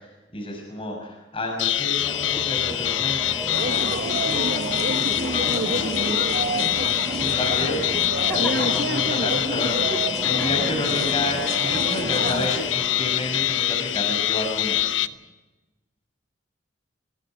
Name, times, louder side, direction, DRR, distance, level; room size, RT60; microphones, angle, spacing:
voice 1, 0.0-6.3 6.5-9.9 10.2-15.0, left 1 dB, 30° left, 0 dB, 6.1 m, -31 dB
sound 1, 1.6-15.1, left 12 dB, 75° left, 0.7 m, -25 dB
Singing / Musical instrument, 2.0-14.5, right 1 dB, 10° right, 0.8 m, -37 dB
sound 2, 3.5-12.5, right 2 dB, 55° right, 1.5 m, -29 dB
voice 2, 8.3-8.8 9.8-10.7 14.1-14.2, equal, 10° left, 2 dB, 3.4 m, -36 dB
22.5 x 21.5 x 5.9 m, 1.1 s
head